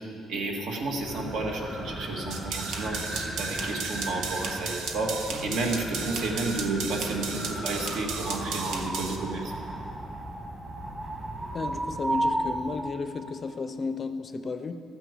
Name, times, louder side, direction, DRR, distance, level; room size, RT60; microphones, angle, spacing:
voice 1, 0.3-9.5, right 2 dB, 70° right, 1 dB, 2.1 m, -31 dB
sound 1, 0.8-13.0, right 1 dB, 20° right, 1.5 m, -35 dB
sound 2, 2.3-9.2, right 5 dB, 90° right, 1.2 m, -35 dB
voice 2, 11.5-14.7, left 4 dB, 30° left, 9 dB, 0.5 m, -33 dB
13.0 x 9.2 x 8.3 m, 2.5 s
cardioid pair, 170°, 0 cm